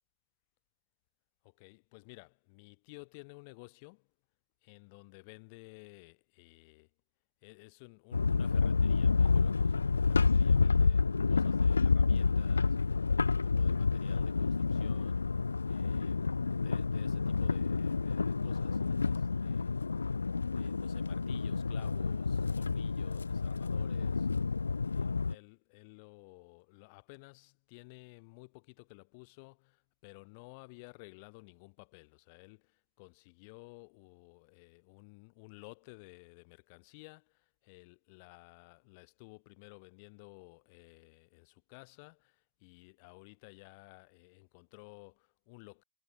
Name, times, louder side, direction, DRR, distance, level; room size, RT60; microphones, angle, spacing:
voice 1, 1.4-4.1 4.6-6.9 7.4-15.3 15.7-19.8 20.5-24.3 24.9-45.8, left 30 dB, 40° left, 6.3 m, -55 dB
sound 1, 8.1-25.3, left 4 dB, 85° left, 1.1 m, -29 dB
figure-of-eight pair, 115°, 0 cm